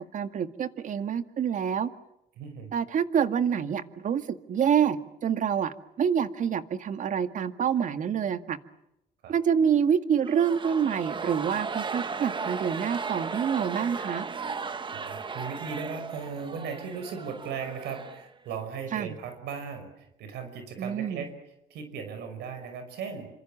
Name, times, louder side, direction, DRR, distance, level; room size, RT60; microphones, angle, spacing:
voice 1, 0.0-1.9 2.7-8.6 9.3-14.3 18.9-19.1 20.8-21.3, right 8 dB, 50° right, 10 dB, 2.0 m, -27 dB
voice 2, 2.4-2.7 9.2-9.4 14.8-21.3 21.7-23.3, right 6 dB, 80° right, 8 dB, 5.7 m, -37 dB
sound 1, 10.2-18.6, right 5 dB, 30° right, 1.5 m, -36 dB
28.0 x 26.5 x 7.4 m, 0.82 s
cardioid pair, 110°, 17 cm